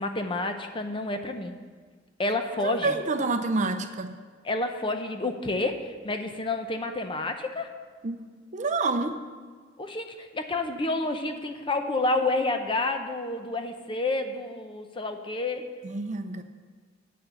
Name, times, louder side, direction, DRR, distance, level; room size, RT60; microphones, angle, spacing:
voice 1, 0.0-1.6 2.2-2.9 4.4-7.7 9.8-15.7, left 2 dB, 30° left, 6 dB, 0.7 m, -29 dB
voice 2, 2.6-4.2 8.0-8.2 8.5-9.2 15.8-16.4, right 3 dB, 40° right, 8 dB, 0.6 m, -28 dB
8.4 x 6.5 x 7.2 m, 1.5 s
head